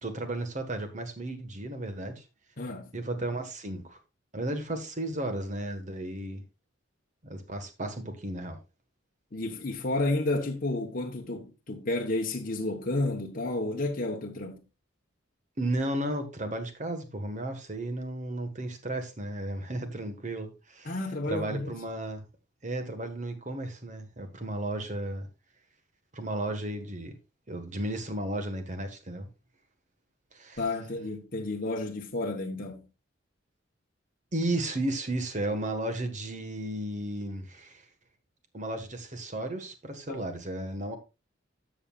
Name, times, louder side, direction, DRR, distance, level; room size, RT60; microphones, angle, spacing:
voice 1, 0.0-2.2 2.9-4.0 4.3-6.4 7.2-8.6 15.6-21.0 21.3-22.3 22.6-25.3 26.1-27.1 27.5-29.3 30.3-30.6 34.3-37.8 38.5-41.0, right 1 dB, 40° right, 1.5 m, -34 dB
voice 2, 2.6-2.9 9.3-14.6 20.8-21.7 30.6-32.8 40.1-40.2, left 2 dB, 45° left, 1.2 m, -31 dB
13.0 x 7.0 x 2.4 m
head